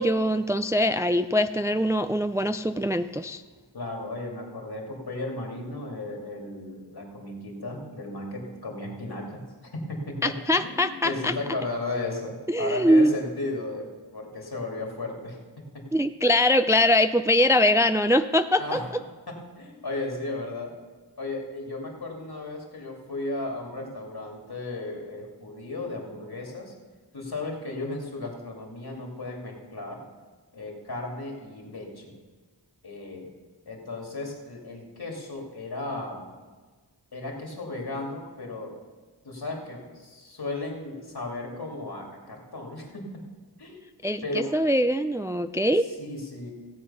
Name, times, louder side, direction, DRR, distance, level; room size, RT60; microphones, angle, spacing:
voice 1, 0.0-3.4 10.2-11.3 12.5-13.1 15.9-18.8 44.0-45.9, left 1 dB, 10° right, 10 dB, 0.3 m, -22 dB
voice 2, 3.7-9.4 9.7-15.4 15.7-15.9 18.6-18.9 19.3-20.7 21.2-26.7 27.1-30.1 30.5-32.1 32.8-33.3 33.7-36.3 37.1-38.7 39.2-43.3 43.6-43.8 44.2-44.6 45.8-46.5, left 2 dB, 65° left, 0 dB, 2.5 m, -35 dB
16.5 x 7.8 x 5.6 m, 1.4 s
wide cardioid pair, 65°, 41 cm